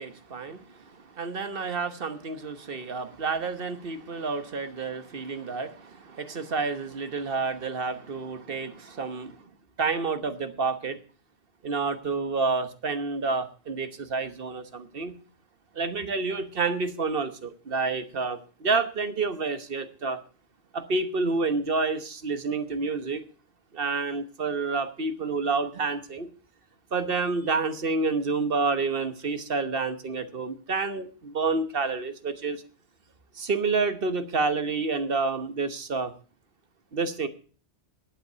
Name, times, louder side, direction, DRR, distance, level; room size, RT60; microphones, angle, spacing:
voice 1, 0.0-9.4 9.8-11.0 11.6-15.1 15.7-20.2 20.7-23.2 23.7-26.3 26.9-32.6 33.4-36.1 36.9-37.3, right 4 dB, 50° right, 10 dB, 1.3 m, -29 dB
11.5 x 8.3 x 6.8 m, 0.39 s
omnidirectional pair, 1.2 m